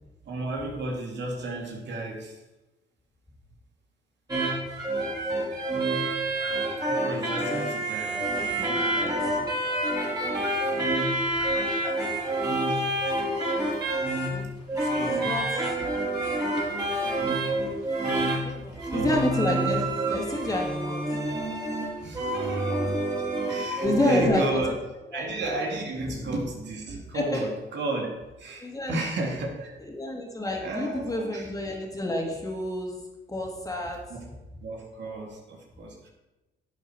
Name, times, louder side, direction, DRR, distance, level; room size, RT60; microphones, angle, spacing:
voice 1, 0.3-2.4 6.9-9.4 10.2-10.4 12.6-12.8 13.1-13.4 13.7-13.8 14.8-15.3 15.8-15.9 16.2-17.5 18.1-19.2 22.0-23.1 23.5-24.7 25.1-28.1 28.4-29.7 30.6-31.5 34.1-34.2 34.6-36.1, right 2 dB, 65° right, 0 dB, 2.5 m, -34 dB
sound 1, 4.3-24.3, right 1 dB, 20° right, 4.2 m, -28 dB
voice 2, 8.3-9.5 14.2-14.5 14.8-15.8 18.3-21.2 23.8-24.6 25.1-25.3 26.1-26.3 27.1-27.5 28.6-29.0 29.8-32.9 33.3-34.0, left 1 dB, 15° left, 0 dB, 2.7 m, -30 dB
11.5 x 7.9 x 4.6 m, 1.0 s
cardioid pair, 90°, 20 cm